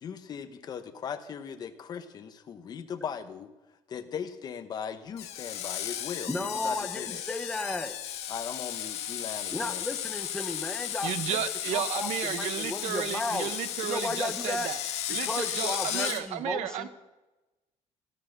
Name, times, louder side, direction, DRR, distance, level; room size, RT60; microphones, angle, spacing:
voice 1, 0.0-3.5 3.9-6.3 6.6-7.2 8.3-9.8, left 7 dB, 35° left, 8 dB, 1.2 m, -38 dB
Screech, 5.2-16.2, left 11 dB, 65° left, 1.5 m, -35 dB
voice 2, 6.3-7.9 9.5-11.1 11.7-13.5 13.8-14.7 15.2-16.9, left 2 dB, 5° left, 6 dB, 1.0 m, -34 dB
voice 3, 11.0-14.8 15.1-16.9, right 10 dB, 75° right, 11 dB, 1.1 m, -33 dB
17.0 x 12.5 x 6.7 m, 1.1 s
cardioid pair, 180°, 11 cm